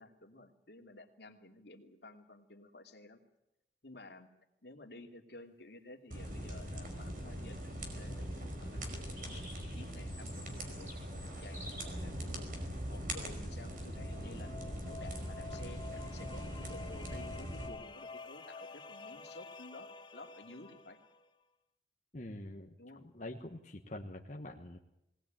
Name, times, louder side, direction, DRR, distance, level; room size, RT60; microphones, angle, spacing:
voice 1, 0.0-3.2 3.8-4.3 4.6-10.9 11.4-12.5 12.9-14.5 14.8-21.0 22.8-23.1, left 2 dB, 65° left, 4 dB, 2.6 m, -53 dB
sound 1, 6.1-17.7, right 1 dB, 50° right, 5.0 m, -42 dB
sound 2, 9.0-11.8, left 1 dB, 10° right, 5.7 m, -52 dB
sound 3, 13.5-21.3, left 4 dB, 25° left, 1.1 m, -50 dB
voice 2, 22.1-24.8, left 1 dB, 45° left, 1 dB, 1.4 m, -45 dB
21.0 x 19.0 x 9.0 m, 0.87 s
head